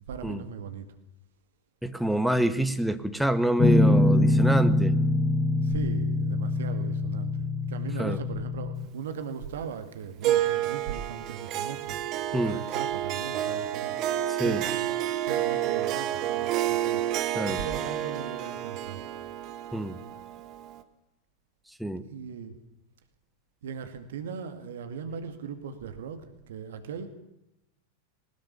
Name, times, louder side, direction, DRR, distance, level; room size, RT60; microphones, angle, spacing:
voice 1, 0.1-0.9 5.6-12.0 12.3-14.0 14.4-14.9 15.3-17.1 17.3-19.0 22.1-22.6 23.6-27.1, right 7 dB, 60° right, 9 dB, 2.2 m, -38 dB
voice 2, 1.8-5.0 8.0-8.2 12.3-12.5 14.3-14.6 17.3-17.6 19.7-20.0 21.8-22.0, right 1 dB, ahead, 9 dB, 1.5 m, -26 dB
Guitar, 3.6-8.9, left 2 dB, 20° left, 1.1 m, -24 dB
Harp, 10.2-20.8, right 12 dB, 40° right, 1.6 m, -30 dB
21.0 x 19.5 x 6.9 m, 0.87 s
figure-of-eight pair, 90°, 0 cm